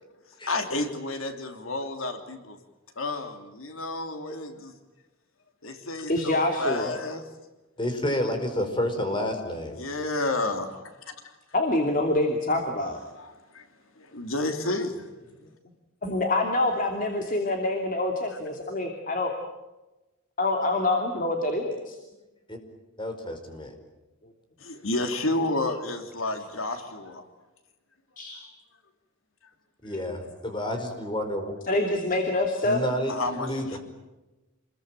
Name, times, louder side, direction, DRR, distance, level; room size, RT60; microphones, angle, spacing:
voice 1, 0.4-2.6 3.0-4.7 5.6-7.2 9.8-11.1 13.2-13.7 14.0-15.1 24.6-27.2 33.1-33.8, left 2 dB, 80° left, 6 dB, 3.0 m, -31 dB
voice 2, 6.1-6.9 11.5-13.0 15.4-15.5 16.0-19.3 20.4-22.0 28.2-28.4 31.7-32.8, left 2 dB, 40° left, 3 dB, 2.8 m, -26 dB
voice 3, 7.8-9.8 22.5-22.6 23.0-23.7 29.8-31.5 32.6-33.8, left 1 dB, 25° left, 6 dB, 4.8 m, -30 dB
28.5 x 22.0 x 9.0 m, 1.1 s
head